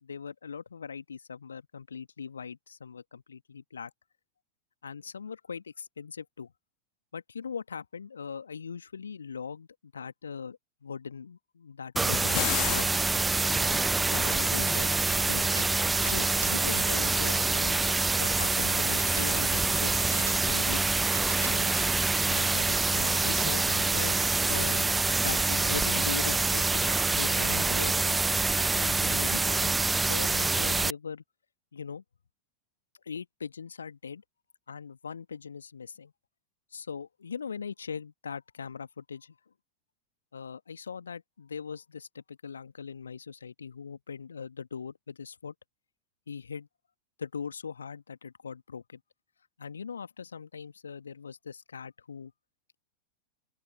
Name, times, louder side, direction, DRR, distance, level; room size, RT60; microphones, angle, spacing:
voice 1, 0.0-3.9 4.8-6.5 7.1-13.0 13.5-15.0 15.2-15.4 16.0-20.8 21.4-21.7 22.3-24.1 24.5-28.2 28.7-31.2 31.7-32.0 33.1-34.2 34.7-36.1 36.7-39.4 40.3-45.5 46.3-46.7 47.2-49.0 49.6-52.3, left 6 dB, 70° left, 1.8 m, -40 dB
sound 1, 11.9-12.9, left 40 dB or more, 45° left, 1.5 m, -31 dB
sound 2, 12.0-30.9, right 3 dB, 10° right, 0.6 m, -26 dB
sound 3, 12.6-12.7 13.1-13.4 13.7-15.8 16.0-19.5 19.8-20.7 21.0-22.1, right 4 dB, 75° right, 2.3 m, -45 dB
open air
figure-of-eight pair, 90°, 0 cm